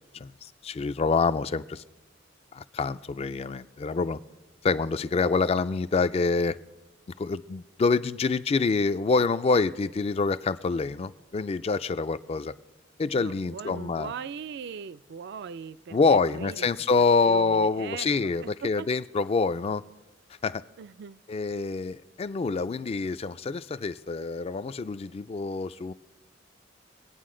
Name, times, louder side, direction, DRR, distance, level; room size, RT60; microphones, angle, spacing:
voice 1, 0.1-1.8 2.5-4.2 4.6-6.6 7.2-12.5 13.0-14.1 15.9-19.8 20.4-20.6 21.3-25.9, left 4 dB, 30° left, 0.3 m, -26 dB
voice 2, 13.1-16.7 17.3-18.9 20.8-21.2, right 6 dB, 60° right, 0.4 m, -40 dB
23.0 x 8.9 x 3.8 m
head